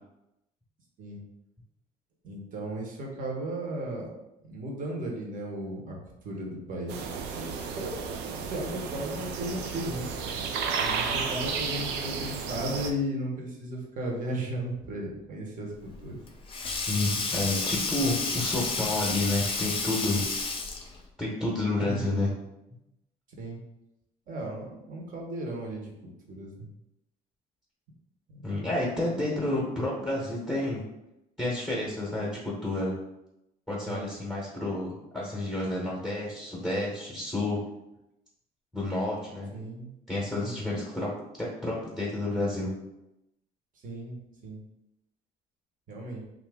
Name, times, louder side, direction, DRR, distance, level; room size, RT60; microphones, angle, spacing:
voice 1, 2.2-4.1 4.4-6.0 6.2-7.1 7.3-10.1 10.8-15.7 16.0-16.2 21.8-22.2 23.4-23.6 24.3-25.9 26.3-26.7 28.3-28.7 33.9-34.1 39.5-39.9 40.3-40.8 43.8-44.2 44.4-44.6 45.9-46.2, right 1 dB, 50° right, -1 dB, 0.9 m, -35 dB
sound 1, 6.9-12.9, right 5 dB, 85° right, 0.4 m, -32 dB
Sink (filling or washing), 15.8-21.0, left 3 dB, 30° left, 0.5 m, -31 dB
voice 2, 16.9-20.3 21.2-22.3 28.4-30.9 31.4-32.9 33.7-37.6 38.7-39.5 40.1-41.1 41.4-42.7, left 2 dB, ahead, -5 dB, 0.8 m, -30 dB
2.7 x 2.5 x 3.4 m, 0.89 s
cardioid pair, 110°, 17 cm